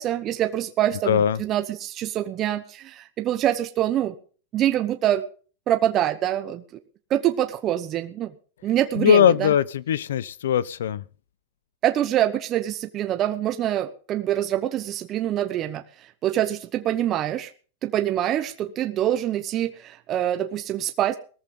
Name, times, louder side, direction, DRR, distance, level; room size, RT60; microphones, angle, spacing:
voice 1, 0.0-4.1 4.5-5.2 5.7-6.6 7.1-8.3 8.6-9.5 11.8-17.5 17.8-21.2, right 12 dB, 30° right, 1.0 m, -25 dB
voice 2, 1.1-1.4 9.0-11.0, left 9 dB, 90° left, 0.8 m, -20 dB
18.5 x 14.0 x 3.8 m
supercardioid pair, 155°, 0 cm